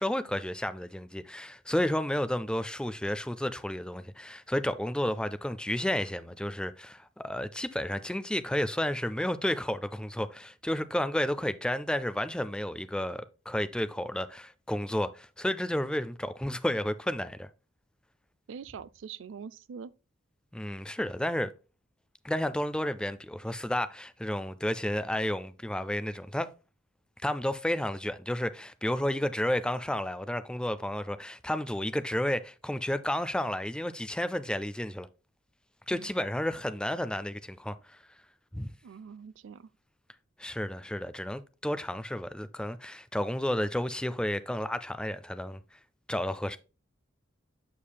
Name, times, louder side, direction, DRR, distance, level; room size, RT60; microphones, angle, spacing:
voice 1, 0.0-17.5 20.5-21.5 22.2-26.5 27.2-35.1 35.9-38.0 38.5-38.7 40.4-45.6 46.1-46.6, left 1 dB, 5° left, 0.4 m, -31 dB
voice 2, 18.5-19.9 35.9-36.1 38.8-39.7, right 6 dB, 75° right, 0.4 m, -44 dB
7.3 x 6.6 x 2.2 m
head